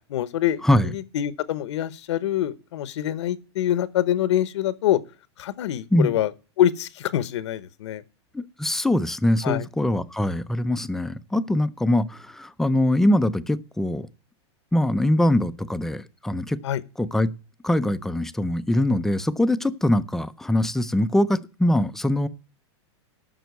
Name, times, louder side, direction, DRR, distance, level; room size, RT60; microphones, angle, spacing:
voice 1, 0.1-5.0 5.4-6.3 6.6-8.0 9.4-9.6 16.6-16.8, left 12 dB, 75° left, 0.9 m, -25 dB
voice 2, 0.6-0.9 5.9-6.1 8.3-14.1 14.7-16.6 17.0-17.3 17.6-22.3, left 1 dB, 5° left, 0.4 m, -22 dB
9.1 x 6.3 x 8.1 m
supercardioid pair, 145°, 15 cm